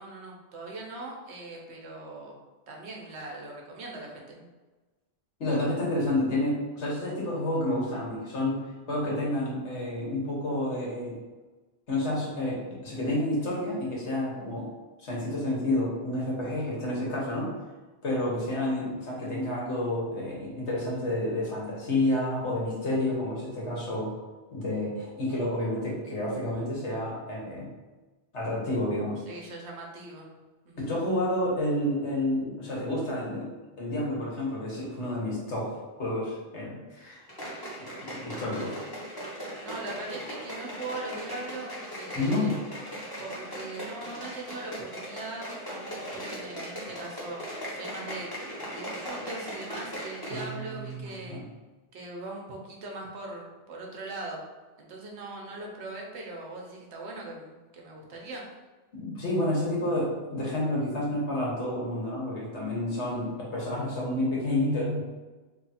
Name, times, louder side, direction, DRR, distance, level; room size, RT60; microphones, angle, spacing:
voice 1, 0.0-2.3 2.7-4.5 29.3-30.3 30.6-30.9 39.6-42.5 43.2-47.4 47.7-48.3 48.7-51.4 51.9-54.4 54.8-58.5, right 2 dB, 80° right, -1 dB, 1.1 m, -40 dB
voice 2, 5.4-11.1 11.9-14.7 15.0-17.5 18.0-24.1 24.5-27.7 28.3-29.2 30.8-33.5 33.8-35.7 35.9-37.3 37.8-38.8 42.1-42.6 50.3-51.4 58.9-65.0, left 1 dB, 90° left, -4 dB, 1.5 m, -30 dB
sound 1, 37.3-50.6 50.9-51.0, equal, 20° left, 0.8 m, -39 dB
3.1 x 2.4 x 4.1 m, 1.2 s
omnidirectional pair, 1.1 m